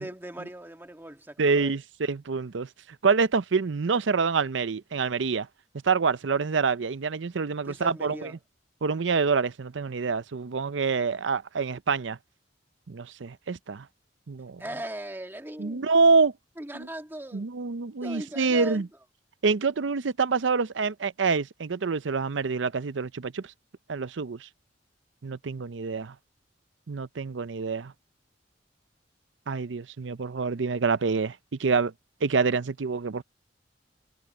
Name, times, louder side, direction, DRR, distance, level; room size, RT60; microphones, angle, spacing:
voice 1, 0.0-1.7 7.6-8.3 14.6-15.8 16.6-17.5 18.0-18.8, right 1 dB, 10° right, 1.7 m, -39 dB
voice 2, 1.4-2.7 3.0-5.5 5.8-8.3 8.8-12.2 12.9-13.9 14.3-14.6 15.6-16.3 16.7-16.9 17.3-18.9 19.4-23.5 23.9-24.5 25.2-26.1 26.9-27.9 29.5-31.9 32.2-33.2, right 4 dB, 90° right, 0.6 m, -26 dB
head